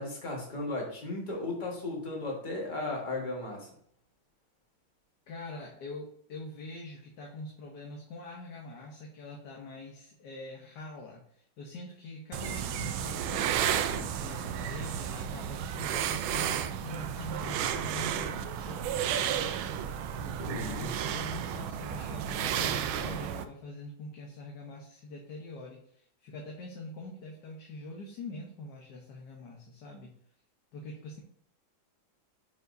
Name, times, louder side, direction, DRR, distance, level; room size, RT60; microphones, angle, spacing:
voice 1, 0.0-3.7 20.1-20.9, left 2 dB, 25° left, -1 dB, 1.6 m, -36 dB
voice 2, 5.3-19.7 20.6-30.2 30.7-31.2, left 2 dB, 65° left, 0 dB, 1.5 m, -44 dB
sound 1, 12.3-23.4, right 9 dB, 90° right, 1.4 m, -32 dB
9.3 x 4.7 x 2.6 m, 0.66 s
omnidirectional pair, 2.1 m